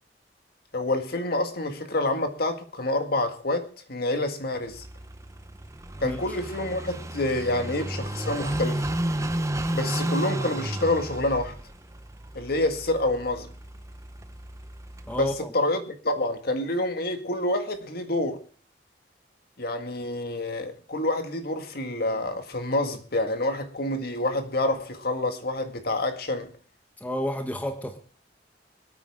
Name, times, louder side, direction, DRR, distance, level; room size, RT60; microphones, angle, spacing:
voice 1, 0.7-4.8 6.0-8.8 9.7-11.6 12.3-13.5 15.2-18.4 19.6-26.5, left 2 dB, 60° left, 1.9 m, -27 dB
Car passing by / Idling, 4.7-15.4, right 1 dB, 20° right, 0.9 m, -32 dB
voice 2, 15.1-15.5 27.0-28.0, left 1 dB, 10° left, 1.1 m, -30 dB
25.5 x 8.9 x 3.6 m
head